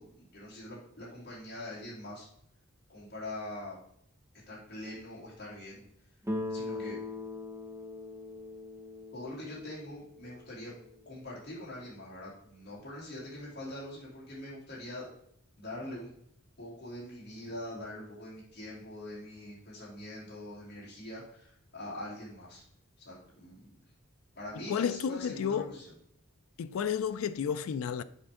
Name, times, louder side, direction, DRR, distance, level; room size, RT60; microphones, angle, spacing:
voice 1, 0.0-2.3 2.9-3.8 4.5-5.8 6.5-7.0 9.1-10.7 11.0-15.1 15.6-16.1 16.6-22.6 23.0-23.8 24.3-26.0, left 1 dB, 50° left, 2.8 m, -43 dB
Guitar, 6.3-11.1, left 2 dB, 15° right, 0.8 m, -40 dB
voice 2, 24.7-25.6 26.6-28.0, left 7 dB, 80° left, 0.3 m, -31 dB
7.3 x 5.1 x 3.6 m
head